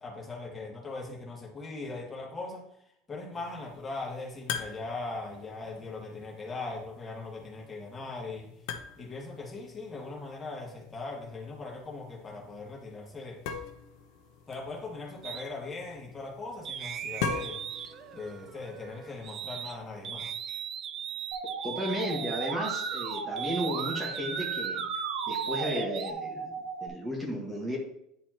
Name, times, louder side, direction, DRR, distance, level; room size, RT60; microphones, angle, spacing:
voice 1, 0.0-8.5 9.0-13.4 14.5-17.6 18.1-20.3, left 3 dB, 20° left, -2 dB, 1.8 m, -40 dB
sound 1, 3.3-20.5, left 6 dB, 70° left, 1.0 m, -43 dB
sound 2, 15.2-15.4 16.6-19.8 20.0-26.1, right 8 dB, 40° right, 0.4 m, -39 dB
Musical instrument, 21.3-26.9, right 5 dB, 85° right, 0.9 m, -35 dB
voice 2, 21.6-24.8 25.3-26.5 26.8-27.8, equal, 15° right, -1 dB, 1.6 m, -34 dB
10.0 x 4.3 x 3.0 m, 0.74 s
supercardioid pair, 140°, 0 cm